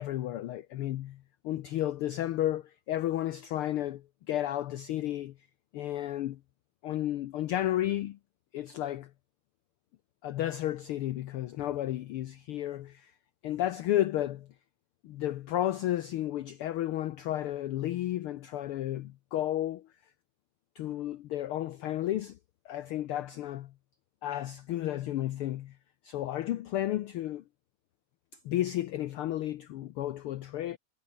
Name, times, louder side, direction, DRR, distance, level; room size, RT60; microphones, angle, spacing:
voice 1, 0.0-5.3 5.7-6.4 6.8-8.2 8.5-9.1 10.2-13.1 13.4-14.5 15.0-19.9 20.7-22.4 22.6-23.7 24.2-25.8 26.0-27.4 28.4-30.8, left 13 dB, 80° left, 1.2 m, -32 dB
omnidirectional pair, 3.3 m